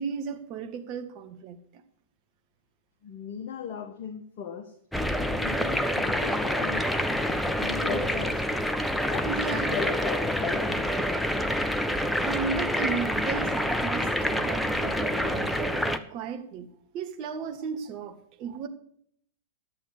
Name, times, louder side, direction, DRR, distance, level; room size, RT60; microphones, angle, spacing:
voice 1, 0.0-1.8 7.8-8.1 9.2-10.1 12.2-16.7 16.9-18.7, right 6 dB, 40° right, 5 dB, 1.7 m, -35 dB
voice 2, 3.0-4.7 5.4-6.8 7.6-8.4 9.0-10.8, left 7 dB, 50° left, 5 dB, 1.3 m, -37 dB
sound 1, 4.9-16.0, equal, 5° left, 0.8 m, -27 dB
11.5 x 7.6 x 6.7 m, 0.66 s
figure-of-eight pair, 100°, 0 cm